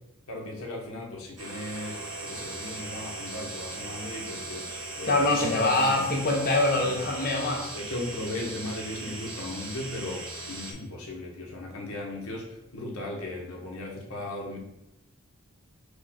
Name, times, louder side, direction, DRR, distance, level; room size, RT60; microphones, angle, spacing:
voice 1, 0.3-4.7 5.0-6.1 6.7-7.0 7.7-14.6, left 1 dB, 75° left, -1 dB, 1.0 m, -37 dB
sound 1, 1.4-10.7, right 2 dB, 90° right, 0.8 m, -38 dB
voice 2, 5.1-7.7, left 2 dB, 40° left, 1 dB, 0.8 m, -24 dB
5.0 x 2.3 x 4.1 m, 0.90 s
head